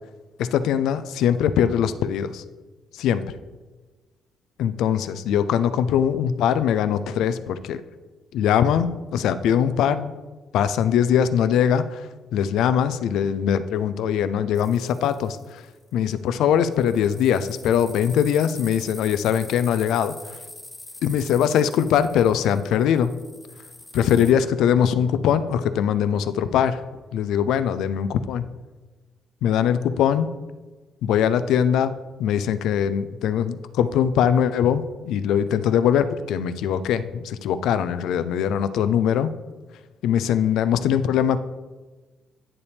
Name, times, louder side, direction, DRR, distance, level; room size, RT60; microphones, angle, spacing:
voice 1, 0.4-2.4 2.9-3.3 4.6-7.8 8.3-10.1 10.5-15.6 15.9-20.1 21.0-23.1 23.9-26.8 27.1-28.5 29.4-30.3 31.0-39.3 40.0-41.4, left 9 dB, 85° left, 13 dB, 0.4 m, -22 dB
sound 1, 14.5-15.7 16.7-24.3, left 2 dB, 15° left, 1.2 m, -44 dB
9.8 x 7.0 x 3.4 m, 1.3 s
cardioid pair, 90°, 0 cm